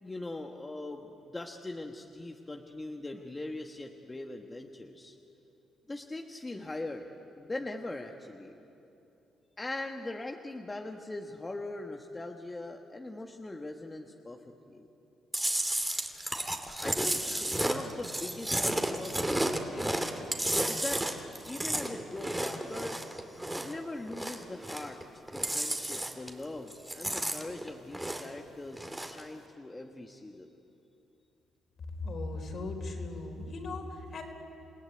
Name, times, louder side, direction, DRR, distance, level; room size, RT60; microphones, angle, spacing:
voice 1, 0.0-5.2 5.9-8.6 9.6-14.9 16.8-20.1 20.6-21.0 21.4-23.0 23.5-25.0 25.3-30.5, left 2 dB, 20° left, 3 dB, 1.4 m, -41 dB
Chewing mastication, 15.3-23.8 24.1-25.0 25.3-26.4 26.7-28.4 28.7-29.2, right 1 dB, 10° right, 2.4 m, -32 dB
voice 2, 32.0-34.2, left 2 dB, 55° left, 3 dB, 4.4 m, -38 dB
29.0 x 17.5 x 9.5 m, 2.8 s
cardioid pair, 90°, 0 cm